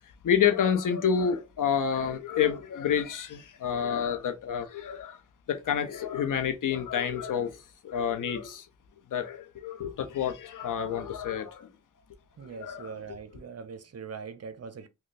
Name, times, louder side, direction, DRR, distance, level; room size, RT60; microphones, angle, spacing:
voice 1, 0.2-5.2 5.5-8.7 9.1-11.7 12.6-12.9, left 8 dB, 90° left, 0.6 m, -29 dB
voice 2, 12.4-14.9, right 5 dB, 55° right, 0.6 m, -41 dB
3.1 x 2.1 x 4.0 m
cardioid pair, 75°, 30 cm